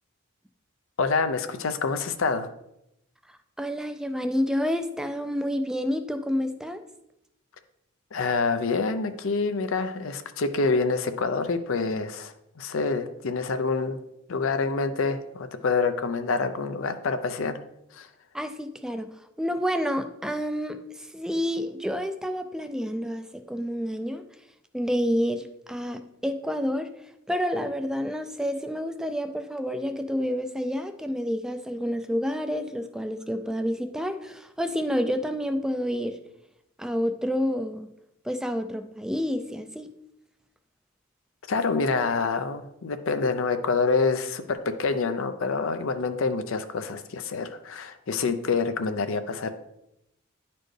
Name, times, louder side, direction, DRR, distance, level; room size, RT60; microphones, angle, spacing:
voice 1, 1.0-2.5 8.1-14.0 14.3-17.6 17.9-18.1 41.5-49.5, left 4 dB, 70° left, 9 dB, 0.5 m, -27 dB
voice 2, 3.6-6.8 18.3-24.2 24.7-26.9 27.3-36.2 36.8-37.9 38.2-39.9, equal, 5° right, 8 dB, 0.3 m, -29 dB
10.0 x 4.3 x 3.2 m, 0.83 s
head